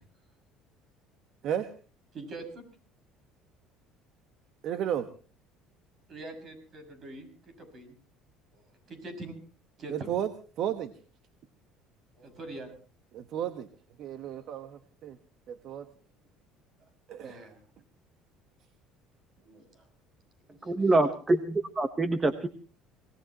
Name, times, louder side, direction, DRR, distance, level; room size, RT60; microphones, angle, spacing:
voice 1, 2.1-2.6 6.1-7.9 8.9-9.4 9.8-10.1 12.2-12.7 17.2-17.6 19.4-19.8 20.5-21.0, right 2 dB, 40° right, 8 dB, 6.2 m, -44 dB
voice 2, 4.6-5.1 9.9-10.3 10.6-10.9 13.1-13.7 14.0-15.2 15.5-15.9 17.1-17.4, right 10 dB, 55° right, 10 dB, 1.3 m, -33 dB
voice 3, 20.7-22.5, right 2 dB, 20° right, 9 dB, 1.2 m, -25 dB
25.5 x 18.5 x 3.0 m, 0.37 s
cardioid pair, 125°, 0 cm